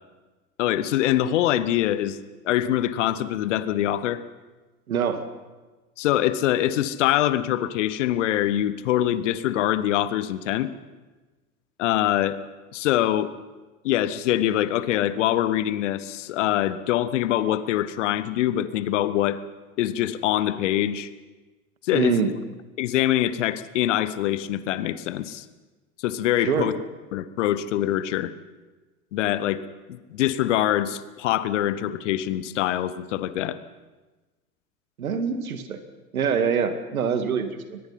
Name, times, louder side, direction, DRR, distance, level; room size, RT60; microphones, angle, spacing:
voice 1, 0.6-4.2 6.0-10.7 11.8-12.4 12.7-13.3 13.8-19.4 19.8-21.1 21.8-22.3 22.8-25.4 26.0-26.7 27.1-28.3 29.1-29.6 29.9-33.6, left 12 dB, 55° left, 15 dB, 1.2 m, -24 dB
voice 2, 4.9-5.2 21.9-22.3 26.4-26.8 35.0-35.8 36.1-37.8, right 6 dB, 70° right, 9 dB, 2.3 m, -24 dB
23.0 x 20.5 x 5.7 m, 1.2 s
figure-of-eight pair, 85°, 44 cm